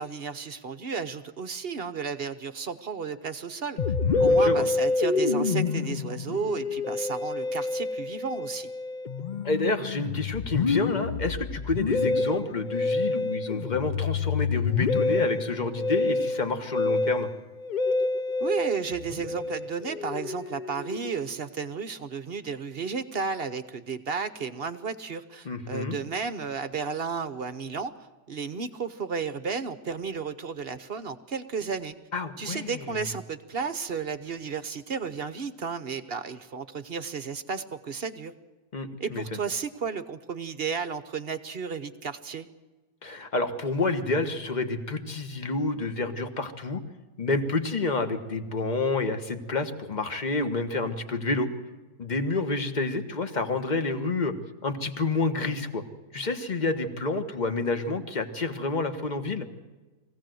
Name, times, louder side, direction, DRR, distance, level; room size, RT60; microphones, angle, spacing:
voice 1, 0.0-3.8 4.2-8.7 18.4-27.9 28.3-31.9 32.4-38.3 39.0-42.5, right 5 dB, 45° right, 11 dB, 0.9 m, -33 dB
Musical instrument, 3.8-21.4, left 3 dB, 55° left, 0.5 m, -27 dB
voice 2, 4.0-4.7 9.4-17.3 25.4-26.0 32.1-32.8 38.7-39.4 43.0-46.8 47.2-51.5 52.0-54.3 54.6-55.8 56.1-59.5, left 3 dB, 30° left, 8 dB, 1.3 m, -29 dB
22.5 x 16.5 x 7.8 m, 1.2 s
omnidirectional pair, 1.7 m